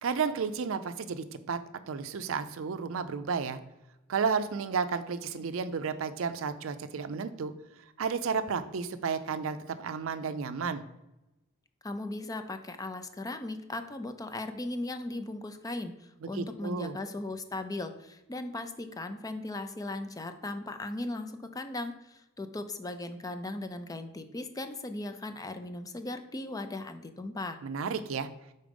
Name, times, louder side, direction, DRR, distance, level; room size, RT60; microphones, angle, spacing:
voice 1, 0.0-1.6 1.9-3.6 4.1-7.5 8.0-10.8 16.2-17.0 27.6-28.3, right 5 dB, 70° right, 11 dB, 0.4 m, -32 dB
voice 2, 11.8-27.6, left 2 dB, 15° left, 8 dB, 0.4 m, -38 dB
5.0 x 4.1 x 5.1 m, 0.95 s
head